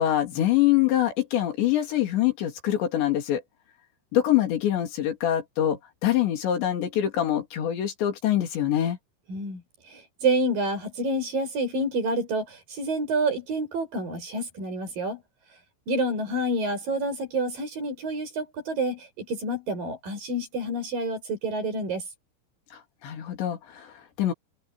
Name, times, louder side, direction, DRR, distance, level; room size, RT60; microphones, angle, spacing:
voice 1, 0.0-3.4 4.1-9.0 22.7-24.3, left 12 dB, 75° left, 5.3 m, -25 dB
voice 2, 9.3-9.6 9.9-15.2 15.9-22.0, right 1 dB, 50° right, 7.8 m, -28 dB
omnidirectional pair, 5.2 m